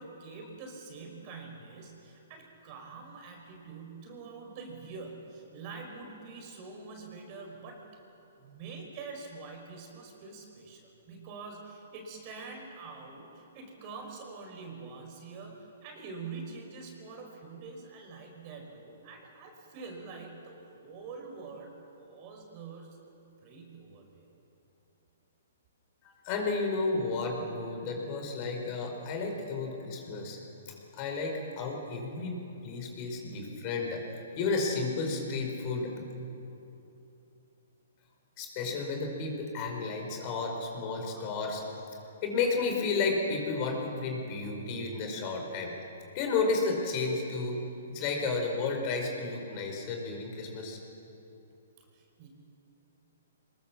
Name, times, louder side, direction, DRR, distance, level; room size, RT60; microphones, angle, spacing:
voice 1, 0.0-7.8 8.4-23.0 23.4-24.3 51.9-52.3, right 4 dB, 40° right, 2 dB, 5.1 m, -45 dB
voice 2, 26.2-30.4 30.6-34.0 34.4-35.9 38.4-41.6 42.2-45.7 46.1-47.6 47.9-50.8, left 3 dB, 35° left, 2 dB, 5.1 m, -32 dB
23.5 x 21.0 x 7.4 m, 2.9 s
hypercardioid pair, 135°, 0 cm